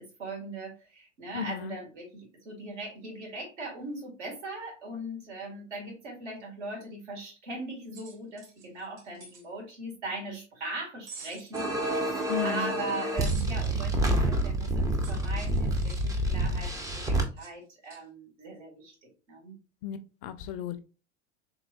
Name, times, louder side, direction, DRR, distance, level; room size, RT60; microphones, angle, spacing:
voice 1, 0.0-19.5, right 2 dB, 65° right, 2.0 m, -40 dB
voice 2, 1.3-1.8 12.3-12.7 19.8-20.8, left 9 dB, 45° left, 0.5 m, -34 dB
sound 1, 7.9-9.4 11.1-11.7 13.2-13.7 15.0-16.1 17.4-17.5 17.8-18.0, right 4 dB, 40° right, 1.9 m, -48 dB
sound 2, 11.5-17.2, right 1 dB, 10° right, 0.4 m, -28 dB
3.6 x 3.0 x 2.5 m
figure-of-eight pair, 85°, 38 cm